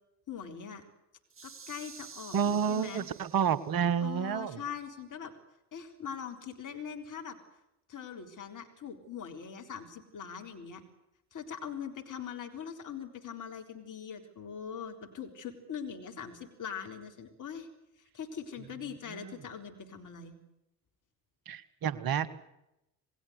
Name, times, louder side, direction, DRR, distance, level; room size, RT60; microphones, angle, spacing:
voice 1, 0.3-0.8 1.4-3.1 4.0-5.3 5.7-7.4 7.9-10.8 11.3-17.7 18.0-20.4, left 7 dB, 40° left, 4 dB, 3.9 m, -42 dB
sound 1, 1.3-3.9, right 5 dB, 25° right, 2.2 m, -50 dB
voice 2, 2.3-4.6 19.2-19.3 21.5-22.3, right 8 dB, 45° right, 17 dB, 1.6 m, -29 dB
28.5 x 20.5 x 8.1 m, 0.87 s
figure-of-eight pair, 50°, 49 cm